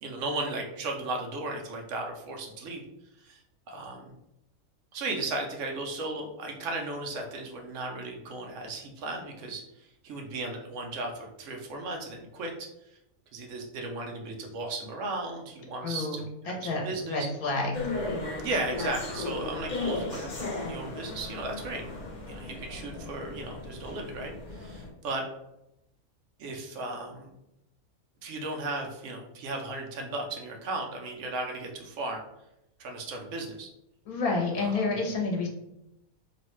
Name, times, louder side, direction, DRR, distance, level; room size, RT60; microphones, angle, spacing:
voice 1, 0.0-2.8 3.2-3.4 3.7-4.1 4.9-12.7 13.3-17.3 18.4-21.8 22.3-25.3 26.4-27.3 28.2-32.2 32.8-33.7 34.7-34.8, right 2 dB, 65° right, 2 dB, 0.9 m, -35 dB
voice 2, 15.8-17.9 34.1-35.5, left 3 dB, 85° left, 0 dB, 1.2 m, -29 dB
sound 1, 17.7-24.9, left 2 dB, 55° left, 0.5 m, -36 dB
3.0 x 2.1 x 2.9 m, 0.85 s
omnidirectional pair, 1.5 m